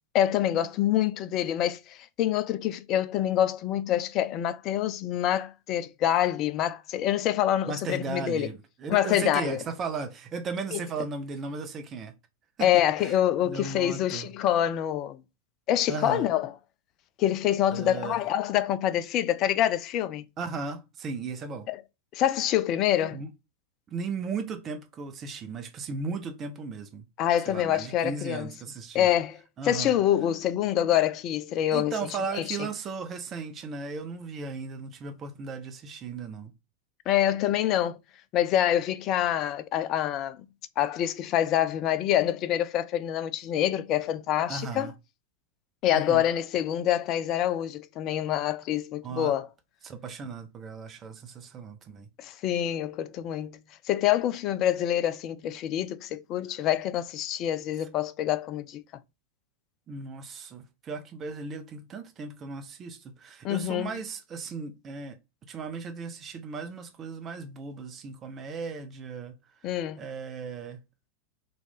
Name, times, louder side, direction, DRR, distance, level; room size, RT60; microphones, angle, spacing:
voice 1, 0.1-8.5 8.9-9.6 10.7-10.8 12.6-15.2 15.7-16.5 17.2-20.2 21.7-21.8 22.1-23.2 27.2-28.5 28.9-31.9 32.4-32.7 37.1-38.0 38.3-40.5 40.8-44.9 45.8-49.5 52.2-53.6 53.9-58.8 63.4-63.9 69.6-70.1, left 11 dB, 35° left, 0.4 m, -26 dB
voice 2, 7.7-12.1 12.6-13.1 13.4-14.3 15.9-16.3 17.7-18.2 20.4-21.7 23.1-23.3 23.9-27.0 27.5-29.1 29.6-29.9 31.7-36.5 44.5-44.9 45.9-46.2 49.0-49.3 49.8-52.1 59.9-65.2 65.4-69.3 69.6-69.7 70.0-70.8, right 4 dB, 25° right, 0.7 m, -36 dB
3.0 x 2.6 x 3.4 m
figure-of-eight pair, 90°, 0 cm